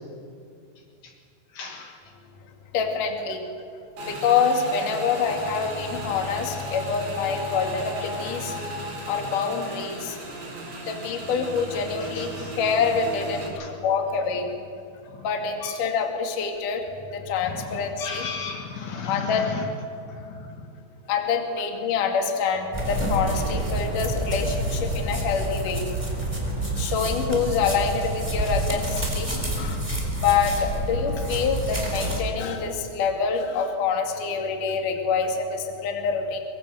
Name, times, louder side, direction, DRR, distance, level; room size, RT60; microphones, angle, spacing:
voice 1, 1.5-2.0 12.0-12.5 13.5-13.7 15.1-15.2 15.6-15.8 17.5-19.7 20.1-20.6, left 5 dB, 65° left, 1 dB, 3.6 m, -35 dB
voice 2, 2.7-3.4 4.1-8.6 9.1-10.2 10.9-14.5 15.2-16.8 17.1-18.2 19.1-19.5 21.1-25.8 26.8-29.9 30.2-36.4, left 6 dB, 50° left, 3 dB, 3.2 m, -26 dB
Motorcycle / Engine, 4.0-13.5, right 1 dB, 55° right, 6.4 m, -35 dB
sound 1, 22.7-32.2, right 1 dB, 5° right, 3.2 m, -28 dB
24.0 x 22.5 x 7.8 m, 2.4 s
omnidirectional pair, 5.7 m